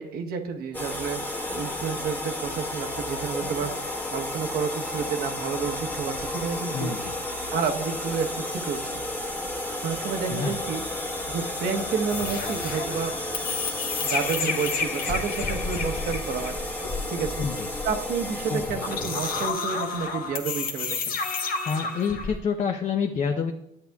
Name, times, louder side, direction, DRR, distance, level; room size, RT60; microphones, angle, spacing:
voice 1, 0.0-3.7 4.1-6.9 7.5-9.0 9.8-10.8 11.3-13.1 14.0-16.6 17.1-17.4 17.8-21.2, right 6 dB, 65° right, 5 dB, 1.0 m, -30 dB
sound 1, 0.7-19.5, left 1 dB, 10° left, 1.1 m, -32 dB
voice 2, 6.7-7.1 10.3-10.6 14.4-14.6 17.4-17.7 18.5-18.6 21.7-23.5, left 6 dB, 40° left, 3 dB, 0.7 m, -28 dB
sound 2, 12.1-22.4, left 4 dB, 60° left, 1.3 m, -31 dB
11.5 x 8.2 x 2.3 m, 0.85 s
cardioid pair, 110°, 17 cm